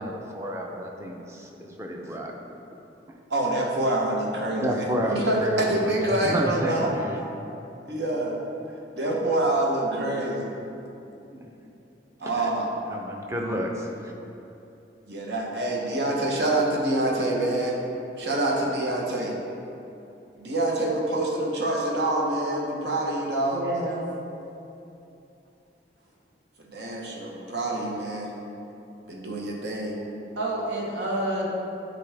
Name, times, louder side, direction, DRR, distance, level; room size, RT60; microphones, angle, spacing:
voice 1, 0.0-2.3 4.6-7.2 11.3-11.5 12.2-12.5 12.9-14.1, equal, 15° right, 0 dB, 0.5 m, -31 dB
voice 2, 3.3-6.9 7.8-8.4 9.0-10.5 12.2-12.7 15.1-17.8 18.2-19.3 20.4-23.6 26.7-28.3 29.1-30.0, right 1 dB, 70° right, -2 dB, 1.0 m, -26 dB
voice 3, 23.5-24.0 30.4-31.5, right 1 dB, 90° right, -4 dB, 1.3 m, -29 dB
9.1 x 3.9 x 3.4 m, 2.8 s
head